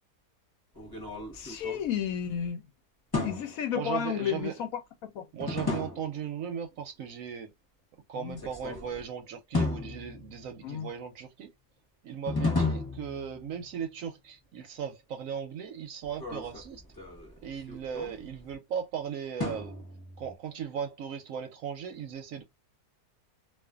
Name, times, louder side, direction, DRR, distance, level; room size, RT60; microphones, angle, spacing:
sound 1, 0.7-2.5 3.1-3.8 5.4-6.3 8.3-9.0 9.5-10.6 12.3-13.7 16.0-18.5 19.4-20.3, left 3 dB, 20° left, 0.8 m, -34 dB
voice 1, 1.3-2.6 3.2-4.7 5.0-5.2 8.2-8.4 10.6-10.9 12.5-12.7, left 9 dB, 70° left, 0.9 m, -32 dB
voice 2, 3.7-4.6 5.3-7.5 8.1-11.5 12.0-16.8 17.4-19.8 20.2-22.4, right 8 dB, 65° right, 0.9 m, -37 dB
2.5 x 2.4 x 2.2 m
omnidirectional pair, 1.7 m